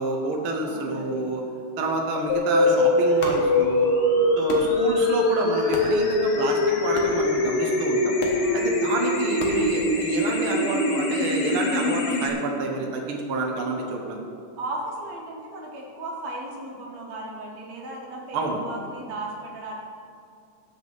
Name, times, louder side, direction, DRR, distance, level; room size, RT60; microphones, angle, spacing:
voice 1, 0.0-1.4 1.8-3.9 4.4-8.2 8.5-14.2 18.3-18.6, right 3 dB, 75° right, 0 dB, 1.2 m, -28 dB
voice 2, 0.6-1.3 4.1-4.4 8.4-8.8 12.5-12.7 14.6-19.7, right 2 dB, 55° right, -1 dB, 2.5 m, -36 dB
sound 1, 2.3-12.3, left 2 dB, 75° left, 1.3 m, -23 dB
sound 2, 3.1-10.4, left 2 dB, 55° left, 1.6 m, -38 dB
17.5 x 7.2 x 4.1 m, 2.3 s
omnidirectional pair, 4.2 m